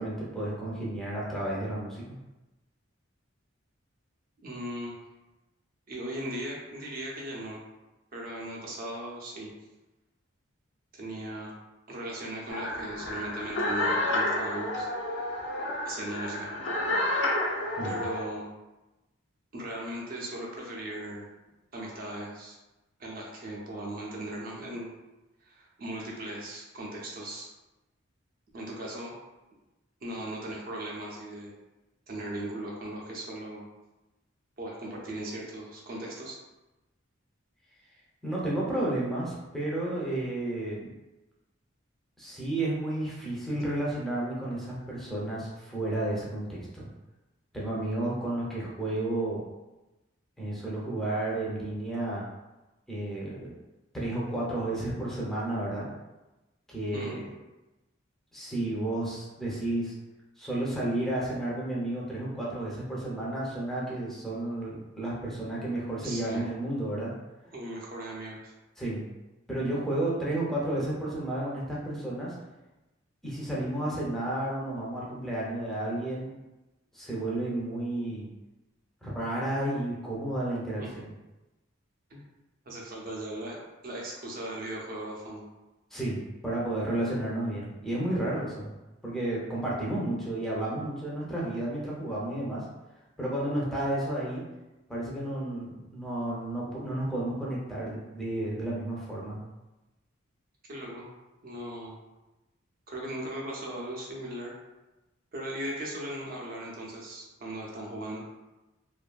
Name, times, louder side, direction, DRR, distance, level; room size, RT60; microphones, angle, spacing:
voice 1, 0.0-2.2 17.8-17.9 38.2-40.9 42.2-46.9 47.5-49.4 50.4-52.3 52.9-53.5 53.9-55.9 56.7-57.3 58.3-59.9 60.4-67.1 68.8-69.0 69.5-72.3 73.2-76.3 76.9-78.3 79.0-81.1 85.9-88.7 89.0-92.6 93.2-94.4 94.9-99.4, right 1 dB, ahead, -6 dB, 0.6 m, -32 dB
voice 2, 4.4-4.9 5.9-7.6 8.1-9.5 10.9-11.5 11.9-14.9 15.9-16.5 17.8-18.5 19.5-21.3 21.7-22.6 23.0-24.9 25.4-27.5 28.5-29.1 30.0-31.5 32.1-33.6 34.6-36.4 56.9-57.2 65.9-66.5 67.5-68.5 80.8-80.9 82.1-82.2 82.7-83.6 83.8-85.4 100.7-101.1 101.4-101.9 102.9-104.5 105.3-108.2, right 1 dB, 45° right, -2 dB, 0.6 m, -38 dB
sound 1, 12.5-18.2, left 1 dB, 60° left, 0.5 m, -30 dB
2.6 x 2.5 x 2.2 m, 1.0 s
head